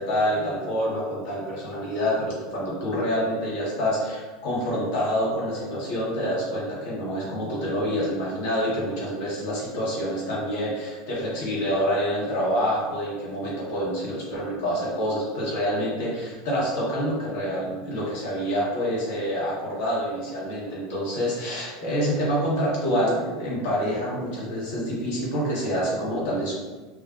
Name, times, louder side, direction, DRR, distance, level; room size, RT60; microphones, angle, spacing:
voice 1, 0.0-26.5, equal, 60° left, -6 dB, 0.9 m, -27 dB
2.4 x 2.1 x 2.4 m, 1.3 s
figure-of-eight pair, 80°, 0 cm